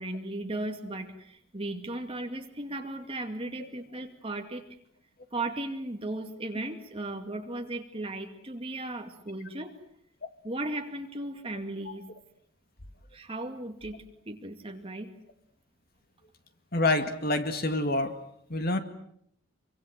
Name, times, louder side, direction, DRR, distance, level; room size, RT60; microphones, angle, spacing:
voice 1, 0.0-4.6 5.3-9.7 10.4-12.0 13.1-15.1, right 2 dB, 25° right, 5 dB, 2.4 m, -36 dB
voice 2, 16.7-18.2 18.5-18.8, left 2 dB, 45° left, 8 dB, 2.1 m, -27 dB
26.0 x 24.5 x 7.8 m, 0.70 s
head